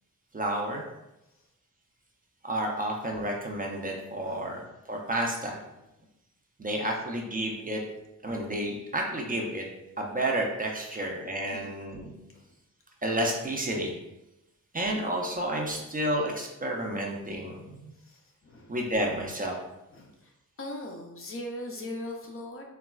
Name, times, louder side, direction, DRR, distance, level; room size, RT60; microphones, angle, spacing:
voice 1, 0.3-0.8 2.4-5.6 6.6-7.8 8.2-9.7 10.0-12.1 13.0-14.0 14.7-17.9 18.7-19.6, right 1 dB, 25° right, 0 dB, 0.4 m, -31 dB
voice 2, 11.5-11.8 12.3-12.4 15.7-15.8 18.0-18.7 19.9-20.3 20.6-22.6, left 1 dB, 40° left, 2 dB, 0.4 m, -40 dB
3.9 x 2.2 x 2.2 m, 0.92 s
wide cardioid pair, 120°, 33 cm